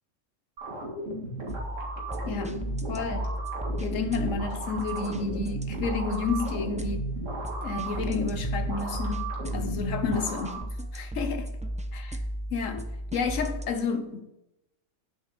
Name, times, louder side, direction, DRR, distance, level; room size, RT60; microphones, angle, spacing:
sound 1, 0.6-10.6, right 2 dB, 75° right, 2.4 m, -36 dB
sound 2, 1.5-13.7, equal, 10° right, 0.6 m, -34 dB
voice 1, 2.3-2.6 2.9-3.3 3.8-7.1 7.6-11.5 11.9-12.2 12.5-14.3, left 5 dB, 85° left, 1.3 m, -31 dB
9.6 x 7.6 x 5.2 m
omnidirectional pair, 1.3 m